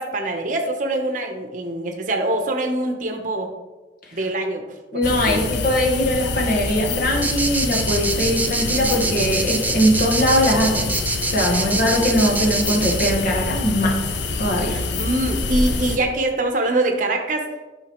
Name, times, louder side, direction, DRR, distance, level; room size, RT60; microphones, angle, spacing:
voice 1, 0.0-3.5 4.1-5.4 11.5-11.7 14.7-17.5, right 2 dB, 45° right, 4 dB, 0.8 m, -24 dB
voice 2, 4.9-10.9 11.3-14.0 14.4-14.8, equal, 50° left, -1 dB, 1.4 m, -21 dB
sound 1, 5.0-16.0, left 3 dB, 70° left, 0.6 m, -26 dB
sound 2, 7.2-13.1, right 3 dB, 10° right, 0.4 m, -25 dB
8.9 x 5.8 x 3.0 m, 1.2 s
head